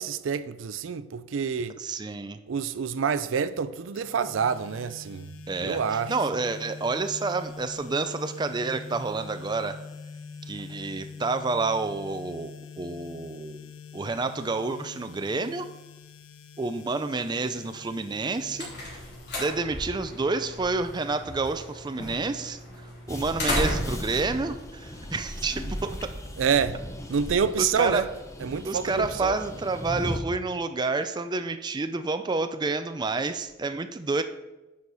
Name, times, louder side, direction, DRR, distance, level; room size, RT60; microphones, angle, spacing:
voice 1, 0.0-1.8 2.5-5.3 5.6-6.1 26.4-26.8 27.1-28.0 28.4-29.4, right 6 dB, 80° right, 0.4 m, -27 dB
voice 2, 1.8-2.4 5.5-9.8 10.5-15.7 16.6-18.7 19.4-22.6 23.1-26.1 27.6-28.1 28.6-34.2, right 3 dB, 20° right, 0.4 m, -29 dB
sound 1, 4.0-19.9, left 4 dB, 85° left, 0.6 m, -44 dB
sound 2, 18.1-25.5, left 1 dB, 60° left, 3.2 m, -35 dB
sound 3, 23.1-30.2, left 1 dB, 15° left, 0.7 m, -37 dB
9.9 x 6.4 x 4.1 m
head